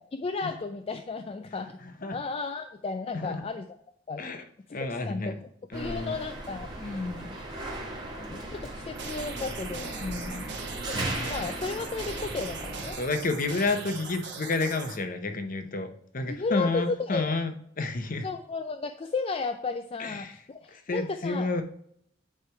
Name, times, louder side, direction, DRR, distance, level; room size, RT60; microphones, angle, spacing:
voice 1, 0.0-3.8 4.1-4.2 4.7-7.3 8.2-10.5 10.9-13.0 16.3-17.3 18.2-21.5, left 4 dB, 30° left, 7 dB, 0.4 m, -34 dB
voice 2, 4.7-5.4 5.7-6.1 10.3-10.6 13.0-18.3 20.0-20.4 20.7-21.6, left 3 dB, 50° left, 7 dB, 0.8 m, -30 dB
sound 1, 5.7-12.9, right 1 dB, 25° right, 1.8 m, -37 dB
sound 2, 8.9-15.0, right 4 dB, 70° right, 1.4 m, -39 dB
9.6 x 3.3 x 4.5 m, 0.69 s
head